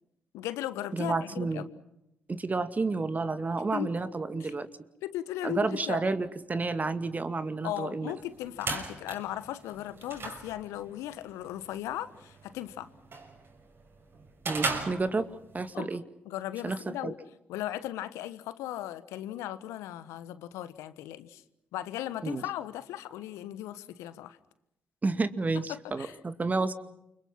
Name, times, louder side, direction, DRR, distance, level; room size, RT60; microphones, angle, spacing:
voice 1, 0.3-1.7 3.7-3.9 4.4-4.5 5.0-6.0 7.6-12.9 15.7-16.0 16.2-17.2 17.5-21.4 21.7-24.4 25.7-26.2, left 13 dB, 75° left, 14 dB, 1.4 m, -37 dB
voice 2, 0.9-1.7 2.3-4.7 5.4-8.2 14.5-15.3 15.5-16.0 16.6-17.1 22.2-22.4 25.0-26.7, right 3 dB, 30° right, 11 dB, 2.3 m, -30 dB
sound 1, 8.2-15.7, right 3 dB, 50° right, 6.6 m, -39 dB
29.0 x 25.5 x 5.8 m, 0.84 s
hypercardioid pair, 40°, 5 cm